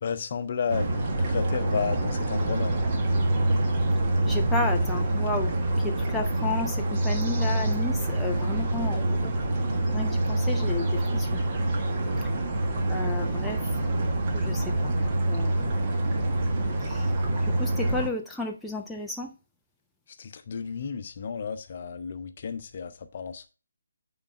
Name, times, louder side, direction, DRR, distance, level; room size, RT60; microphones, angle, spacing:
voice 1, 0.0-0.9 1.3-2.7 20.2-23.5, left 6 dB, 40° left, 0.8 m, -32 dB
sound 1, 0.7-18.1, right 1 dB, 30° right, 1.4 m, -26 dB
voice 2, 4.3-9.3 9.9-11.4 12.9-13.6 14.3-14.9 15.2-15.8 16.8-17.1 17.4-19.3, left 3 dB, 5° left, 0.6 m, -33 dB
9.0 x 4.0 x 5.3 m
figure-of-eight pair, 145°, 0 cm